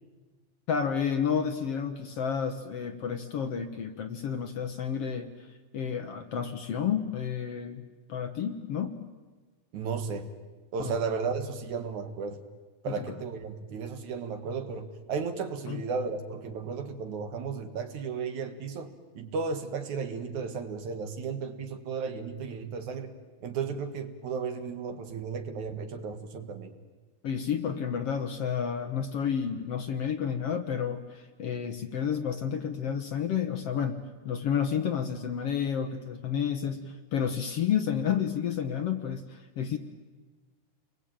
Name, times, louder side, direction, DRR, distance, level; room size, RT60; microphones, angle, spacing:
voice 1, 0.7-5.3 5.7-7.8 8.1-9.0 10.8-11.0 12.9-13.1 15.7-15.8 27.2-34.0 34.3-39.8, left 7 dB, 60° left, 7 dB, 1.9 m, -30 dB
voice 2, 9.7-10.3 10.7-12.4 12.8-18.9 19.2-23.1 23.4-26.7, right 5 dB, 65° right, 8 dB, 2.9 m, -34 dB
30.0 x 22.0 x 9.0 m, 1.3 s
omnidirectional pair, 3.8 m